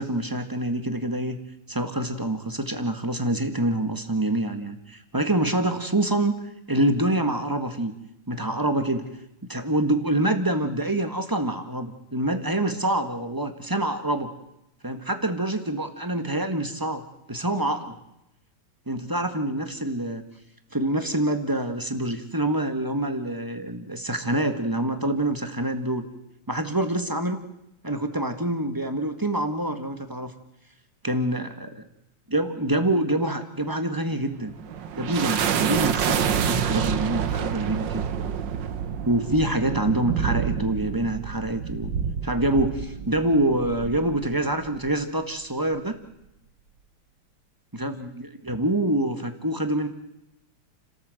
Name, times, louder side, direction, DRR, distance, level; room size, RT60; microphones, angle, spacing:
voice 1, 0.0-1.4 1.7-6.3 6.7-7.9 8.3-9.1 9.4-14.3 14.8-17.0 17.3-18.0 18.9-20.2 20.7-26.1 26.5-27.4 27.8-30.3 31.0-31.7 32.3-34.6 35.0-38.0 39.1-41.9 42.2-46.0 47.7-49.9, right 1 dB, 10° right, 7 dB, 1.4 m, -26 dB
sound 1, 34.3-45.0, right 8 dB, 65° right, 1.7 m, -28 dB
30.0 x 13.5 x 7.9 m, 0.86 s
omnidirectional pair, 2.3 m